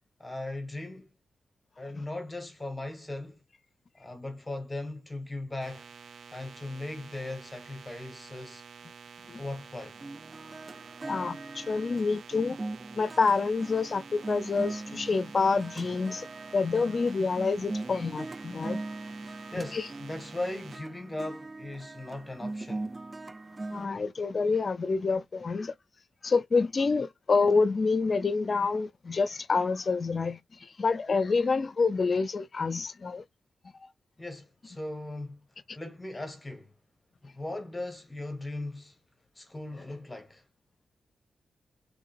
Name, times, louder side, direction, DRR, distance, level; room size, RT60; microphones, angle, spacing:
voice 1, 0.2-1.1 1.8-3.4 4.0-5.9 6.3-8.6 9.4-10.0 19.2-22.9 34.2-35.4 35.7-36.7 37.2-39.0 39.3-40.4, left 2 dB, 20° left, 1.5 m, -38 dB
sound 1, 5.6-20.8, right 5 dB, 70° right, 0.7 m, -49 dB
sound 2, 10.0-23.9, right 2 dB, 35° right, 0.4 m, -40 dB
voice 2, 11.1-12.6 13.0-16.3 16.5-18.8 19.5-19.9 23.7-25.7 26.2-33.2 33.8-33.9, left 4 dB, 50° left, 0.5 m, -27 dB
3.6 x 3.5 x 2.6 m
cardioid pair, 50°, 0 cm